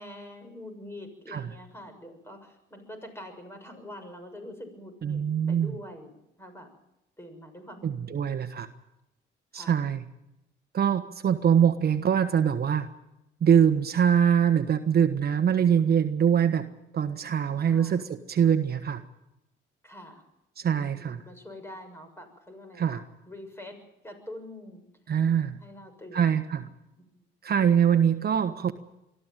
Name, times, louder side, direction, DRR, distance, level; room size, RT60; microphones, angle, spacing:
voice 1, 0.0-5.2 5.5-6.1 6.4-6.7 7.2-8.2 9.5-9.8 17.6-18.0 19.8-20.2 20.7-23.8 24.0-24.8 25.6-26.3 27.1-27.2, left 1 dB, 10° left, 6 dB, 6.7 m, -45 dB
voice 2, 5.0-5.7 7.8-8.7 9.5-10.0 10.7-12.9 13.4-16.7 16.9-19.0 20.6-21.2 22.8-23.0 25.1-25.6 26.1-26.7 27.4-28.7, right 8 dB, 55° right, 8 dB, 1.4 m, -23 dB
23.0 x 14.0 x 9.2 m, 0.88 s
cardioid pair, 90°, 20 cm